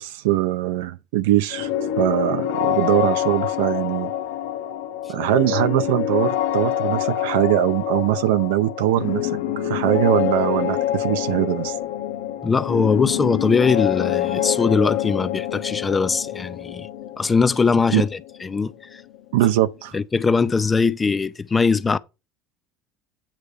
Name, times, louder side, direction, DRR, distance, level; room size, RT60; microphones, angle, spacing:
voice 1, 0.0-1.7 2.0-4.1 5.1-9.3 9.6-11.8 17.9-18.0 19.3-19.9, right 14 dB, 90° right, 0.6 m, -21 dB
sound 1, 1.5-19.1, left 11 dB, 85° left, 1.0 m, -26 dB
voice 2, 12.4-16.9 17.2-19.0 19.9-22.0, left 4 dB, 20° left, 0.6 m, -21 dB
8.9 x 3.3 x 6.4 m
supercardioid pair, 110°, 0 cm